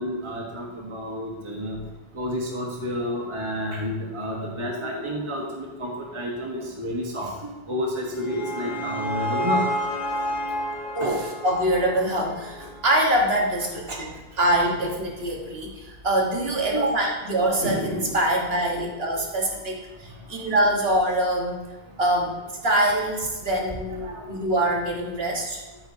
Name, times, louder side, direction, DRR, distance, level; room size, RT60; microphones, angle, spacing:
voice 1, 0.0-1.8 2.1-9.7 11.0-11.1 13.9-14.0 16.7-16.9 19.2-19.6 24.0-24.2, equal, 30° right, -1 dB, 1.2 m, -30 dB
sound 1, 7.8-13.0, equal, 40° left, 1.6 m, -30 dB
voice 2, 10.9-21.6 22.0-22.3 22.6-25.6, right 1 dB, 70° right, -1 dB, 1.6 m, -24 dB
10.0 x 8.5 x 2.7 m, 1.2 s
omnidirectional pair, 1.1 m